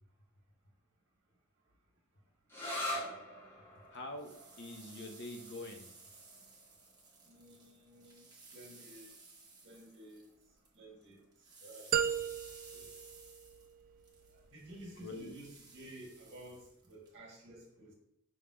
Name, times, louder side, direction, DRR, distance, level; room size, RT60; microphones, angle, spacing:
sound 1, 2.5-9.9, left 1 dB, 10° left, 1.2 m, -45 dB
voice 1, 3.9-4.3 4.6-5.9 8.0-8.1 15.0-15.3, left 2 dB, 55° left, 4 dB, 0.9 m, -45 dB
sound 2, 3.9-10.8 11.0-17.1, right 3 dB, 20° right, 1.1 m, -57 dB
voice 2, 7.2-9.1 9.6-10.3 10.7-11.2 11.6-12.3 12.7-12.9 14.3-17.9, right 1 dB, 55° right, 1 dB, 1.6 m, -53 dB
sound 3, 11.9-14.0, right 9 dB, 40° right, 0.3 m, -35 dB
5.5 x 3.7 x 4.8 m, 0.73 s
head